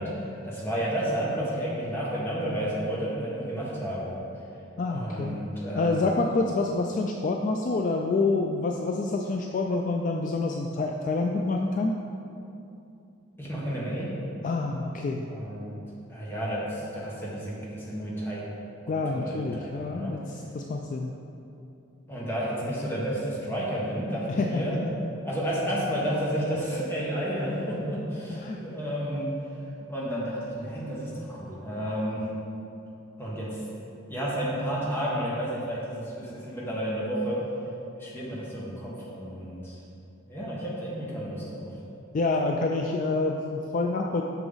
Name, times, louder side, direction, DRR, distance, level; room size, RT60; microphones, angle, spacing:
voice 1, 0.0-4.1 4.9-6.0 13.4-14.1 15.3-15.7 16.1-18.5 19.1-20.1 22.1-24.8 25.2-29.3 29.9-32.2 33.2-33.6 34.1-37.4 38.0-39.8 40.3-41.7, equal, 10° left, -6 dB, 1.4 m, -31 dB
voice 2, 4.8-5.4 5.7-12.0 14.4-15.2 18.9-21.1 24.3-24.6 28.3-28.6 42.1-44.2, left 3 dB, 40° left, 2 dB, 0.3 m, -27 dB
7.0 x 5.9 x 3.9 m, 2.7 s
head